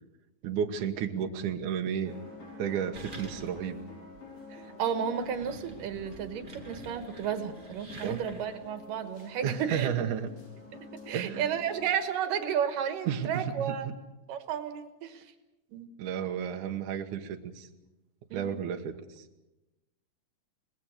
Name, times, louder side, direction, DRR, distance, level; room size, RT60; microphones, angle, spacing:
voice 1, 0.4-2.2 2.6-3.8 8.0-8.2 9.4-10.3 11.1-11.5 13.1-13.7 16.0-17.7 18.3-19.3, right 8 dB, 70° right, 4 dB, 2.7 m, -32 dB
sound 1, 2.0-11.9, left 2 dB, 45° left, 6.8 m, -49 dB
sound 2, 2.9-3.8 4.1-4.2 4.9-8.7, right 2 dB, 15° right, 2.3 m, -48 dB
voice 2, 4.5-9.9 10.7-10.8 11.1-13.9 14.3-15.2 15.7-15.9 18.3-18.6, right 8 dB, 90° right, 9 dB, 3.2 m, -32 dB
25.0 x 20.0 x 6.5 m, 1.0 s
omnidirectional pair, 3.8 m